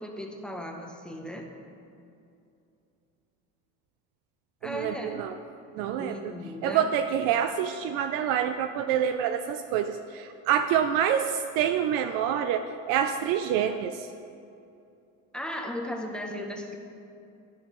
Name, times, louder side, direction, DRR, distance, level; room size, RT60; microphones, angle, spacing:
voice 1, 0.0-1.5 4.6-5.2 5.8-6.9 15.3-16.8, left 1 dB, ahead, 2 dB, 0.7 m, -36 dB
voice 2, 4.7-5.3 5.7-6.2 6.6-14.1, right 9 dB, 60° right, 8 dB, 0.5 m, -27 dB
10.5 x 10.5 x 3.0 m, 2.6 s
cardioid pair, 135°, 40 cm